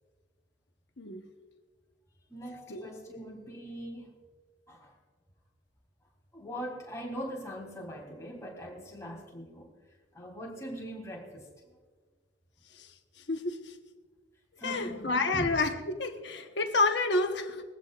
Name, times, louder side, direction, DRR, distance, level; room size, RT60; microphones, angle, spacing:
voice 1, 2.3-4.2 4.7-5.0 6.3-9.7 10.1-11.5 14.6-15.5, equal, 15° left, 3.3 m, -41 dB
voice 2, 13.3-13.7 14.6-17.6, left 3 dB, 60° left, 1.1 m, -29 dB
21.5 x 15.5 x 2.5 m
head